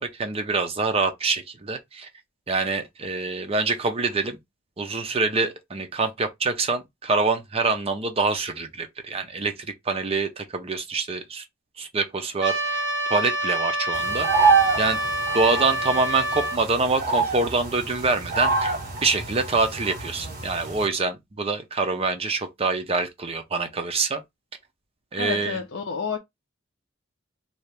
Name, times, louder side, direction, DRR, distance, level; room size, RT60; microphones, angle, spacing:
voice 1, 0.0-2.1 2.5-4.4 4.8-11.4 11.8-14.3 14.8-15.0 15.3-18.7 19.0-24.2 25.1-25.6, right 3 dB, 30° right, 0.6 m, -25 dB
Trumpet, 12.4-16.6, right 1 dB, 70° right, 0.9 m, -27 dB
sound 1, 13.9-20.9, right 4 dB, 50° right, 1.4 m, -26 dB
voice 2, 25.2-26.2, left 6 dB, 65° left, 0.5 m, -29 dB
2.8 x 2.8 x 3.3 m
head